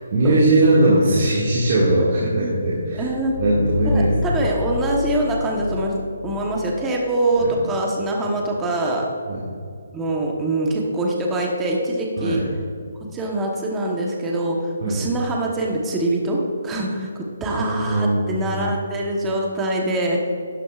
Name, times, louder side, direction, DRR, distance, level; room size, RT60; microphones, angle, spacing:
voice 1, 0.1-3.1 3.4-4.5 7.4-7.5 9.3-9.4 12.2-12.4 14.8-15.1 17.6-18.5, right 1 dB, 45° right, -7 dB, 2.0 m, -19 dB
voice 2, 2.0-2.5 2.9-3.3 3.8-5.9 6.2-9.0 9.9-12.4 13.0-20.2, right 1 dB, 10° right, -1 dB, 1.1 m, -24 dB
sound 1, 2.8-7.5, left 3 dB, 85° left, 0.4 m, -29 dB
12.0 x 9.7 x 2.4 m, 2.4 s
hypercardioid pair, 165°, 0 cm